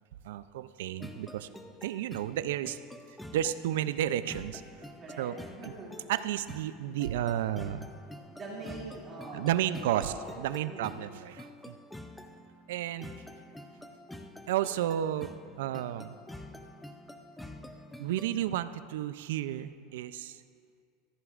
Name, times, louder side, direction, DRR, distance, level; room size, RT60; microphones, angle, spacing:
voice 1, 0.2-1.5 1.8-2.8 3.3-4.6 5.2-5.4 6.1-7.9 9.3-11.7 12.7-13.1 14.5-16.2 18.0-20.4, right 11 dB, 80° right, 13 dB, 0.4 m, -32 dB
sound 1, 1.0-18.4, left 1 dB, 5° left, 0.5 m, -48 dB
voice 2, 4.9-6.0 8.3-11.0, right 2 dB, 20° right, -5 dB, 2.4 m, -44 dB
14.5 x 14.5 x 2.5 m, 2.2 s
supercardioid pair, 160°, 0 cm